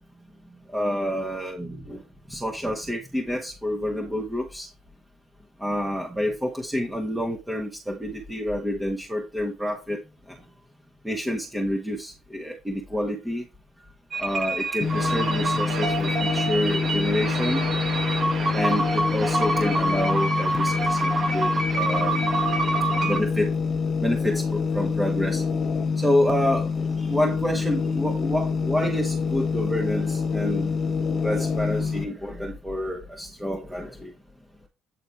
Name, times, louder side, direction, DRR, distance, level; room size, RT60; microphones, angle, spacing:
voice 1, 0.7-1.7 2.3-4.7 5.6-10.0 10.3-10.4 11.0-13.4 14.2-17.7 18.5-22.2 23.0-23.5 24.0-25.4 26.0-30.7 31.2-34.1, left 1 dB, 10° right, 1.5 m, -28 dB
sound 1, 14.1-23.2, right 2 dB, 45° right, 1.6 m, -27 dB
sound 2, 14.8-32.0, left 5 dB, 45° left, 1.2 m, -26 dB
9.2 x 4.1 x 3.6 m
hypercardioid pair, 55°, 0 cm